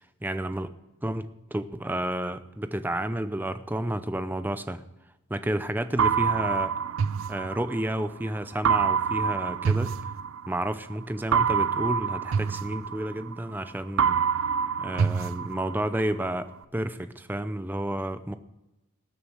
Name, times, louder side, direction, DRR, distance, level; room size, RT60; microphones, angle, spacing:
voice 1, 0.2-0.7 1.0-4.8 5.3-6.7 7.3-9.9 10.5-14.2 14.8-18.3, right 1 dB, 10° right, 11 dB, 0.5 m, -31 dB
sound 1, 6.0-8.1 8.6-10.7 11.3-13.6 14.0-16.1, right 6 dB, 75° right, 0.4 m, -26 dB
19.0 x 6.7 x 6.3 m, 0.96 s
head